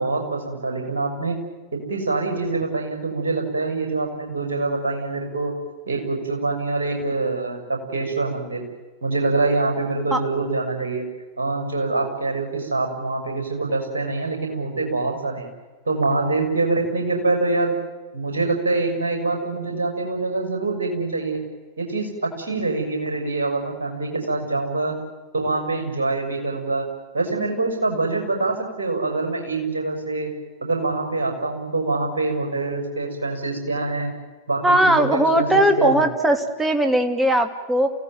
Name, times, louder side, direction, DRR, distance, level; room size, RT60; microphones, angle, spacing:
voice 1, 0.0-1.4 1.7-5.5 5.9-8.6 9.0-11.0 11.4-15.5 15.8-17.8 18.1-21.4 21.8-24.9 25.3-26.9 27.1-30.3 30.6-34.1 34.5-36.1, right 3 dB, 70° right, 4 dB, 6.4 m, -25 dB
voice 2, 34.6-37.9, right 1 dB, 5° right, 5 dB, 2.8 m, -19 dB
28.5 x 17.5 x 9.4 m, 1.3 s
figure-of-eight pair, 90°, 0 cm